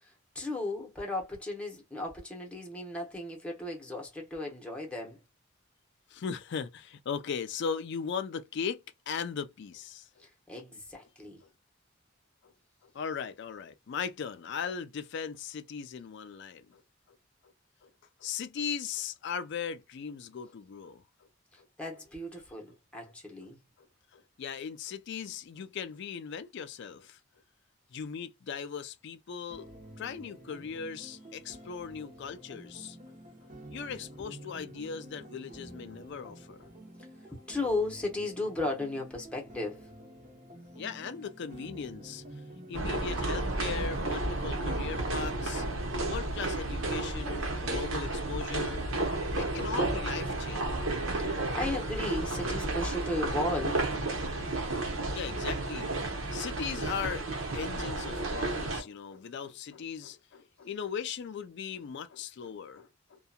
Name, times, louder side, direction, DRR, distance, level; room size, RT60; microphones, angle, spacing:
voice 1, 0.0-5.2 10.2-11.4 21.5-23.6 37.0-39.9 51.2-54.0, left 2 dB, 5° left, 0.8 m, -35 dB
voice 2, 6.1-10.1 11.4-11.5 12.8-16.8 17.8-17.9 18.2-21.0 21.6-21.7 24.1-27.2 27.9-29.7 30.0-33.0 33.4-36.7 40.8-42.2 42.7-45.6 46.0-48.9 49.4-50.7 55.1-63.2, left 6 dB, 60° left, 0.4 m, -38 dB
sound 1, 29.5-45.5, right 1 dB, 40° right, 0.9 m, -49 dB
sound 2, 42.7-58.8, right 2 dB, 80° right, 0.9 m, -32 dB
2.7 x 2.2 x 2.3 m
head